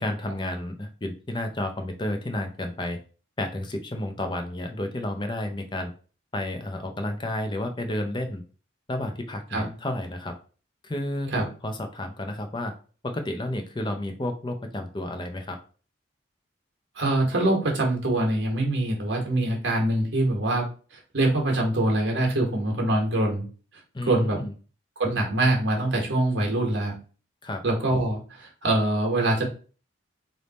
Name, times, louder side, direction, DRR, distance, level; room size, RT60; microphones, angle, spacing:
voice 1, 0.0-3.0 3.4-5.9 6.3-8.4 8.9-10.3 10.8-11.3 11.6-12.7 13.0-15.6 23.9-24.5 27.4-27.6, left 1 dB, 25° left, 5 dB, 0.5 m, -31 dB
voice 2, 17.0-20.7 21.1-23.4 24.0-24.4 25.0-26.9 27.6-29.5, right 1 dB, 70° right, 1 dB, 1.3 m, -24 dB
3.4 x 2.7 x 4.1 m, 0.38 s
head